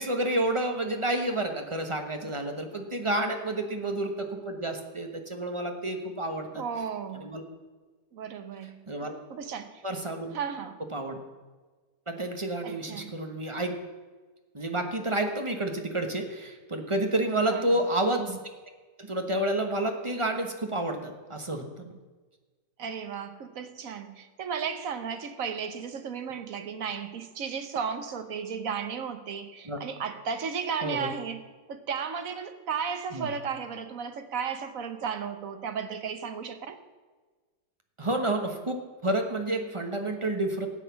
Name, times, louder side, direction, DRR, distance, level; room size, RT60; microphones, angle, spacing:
voice 1, 0.0-6.6 7.2-7.4 8.9-9.1 9.8-10.3 10.9-11.2 12.1-13.7 14.5-18.4 19.0-21.9 29.6-29.8 30.8-31.1 33.1-33.3 38.0-40.7, right 1 dB, 20° right, 4 dB, 1.1 m, -30 dB
voice 2, 6.6-7.4 8.1-8.9 9.3-9.8 10.3-10.8 12.6-13.1 17.5-17.8 22.8-31.4 31.7-36.8, right 6 dB, 55° right, 9 dB, 1.3 m, -34 dB
13.0 x 8.3 x 7.0 m, 1.4 s
omnidirectional pair, 1.9 m